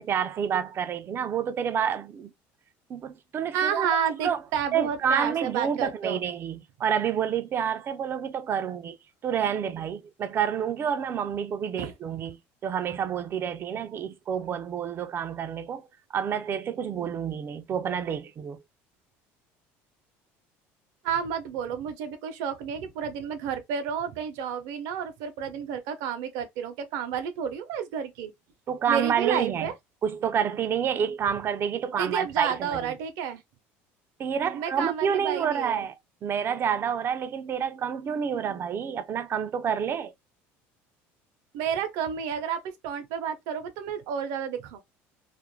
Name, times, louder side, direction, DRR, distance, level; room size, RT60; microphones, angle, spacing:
voice 1, 0.0-2.3 2.9-3.9 4.2-4.4 4.7-9.0 9.2-15.8 16.1-18.6 28.7-29.7 30.0-32.9 34.2-35.9 36.2-40.1, right 8 dB, 40° right, 0.4 m, -28 dB
voice 2, 3.5-6.2 11.8-11.9 21.0-28.3 28.9-29.7 32.0-33.4 34.5-35.8 41.5-44.8, right 8 dB, 75° right, 0.6 m, -30 dB
2.4 x 2.0 x 3.0 m
supercardioid pair, 105°, 6 cm